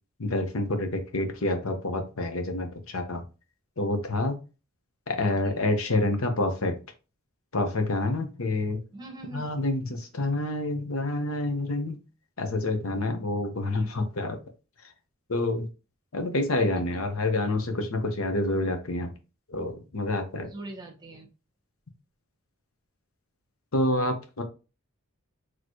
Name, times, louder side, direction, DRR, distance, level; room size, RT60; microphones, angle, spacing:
voice 1, 0.2-3.2 3.8-4.4 5.1-6.8 7.5-8.8 9.3-12.0 12.4-14.4 15.3-15.7 16.1-19.1 19.5-20.5 23.7-24.4, left 2 dB, 85° left, 5 dB, 1.0 m, -28 dB
voice 2, 5.2-5.7 8.9-9.4 13.7-13.9 20.5-21.3, right 2 dB, 20° right, 4 dB, 1.0 m, -42 dB
4.3 x 3.1 x 3.0 m, 0.30 s
head